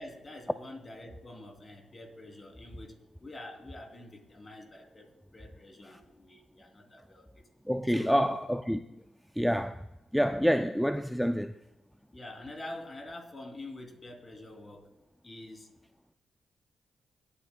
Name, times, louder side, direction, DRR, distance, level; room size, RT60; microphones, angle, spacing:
voice 1, 0.0-7.4 7.9-8.2 12.1-14.9 15.2-15.7, left 1 dB, 35° left, 3.0 m, -46 dB
voice 2, 7.7-8.8 9.4-9.7 10.1-11.5, equal, ahead, 0.4 m, -27 dB
23.0 x 9.1 x 2.2 m
cardioid pair, 60°, 0 cm